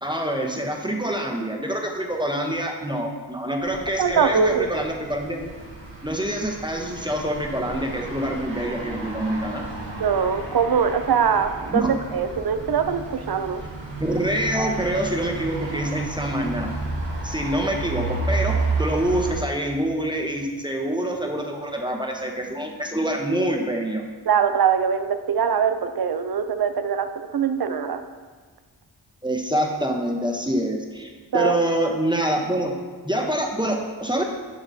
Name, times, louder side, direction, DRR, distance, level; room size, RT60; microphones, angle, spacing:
voice 1, 0.0-5.5 6.0-9.7 11.7-12.0 14.0-16.7 17.2-24.0 29.2-32.7 33.0-34.2, right 1 dB, 10° right, 1 dB, 0.8 m, -26 dB
sound 1, 3.6-19.3, right 3 dB, 85° right, 1.5 m, -32 dB
voice 2, 4.0-4.7 10.0-13.6 24.3-28.0 31.3-31.6, right 6 dB, 55° right, 9 dB, 0.6 m, -22 dB
7.2 x 7.0 x 2.7 m, 1.5 s
wide cardioid pair, 40°, 45 cm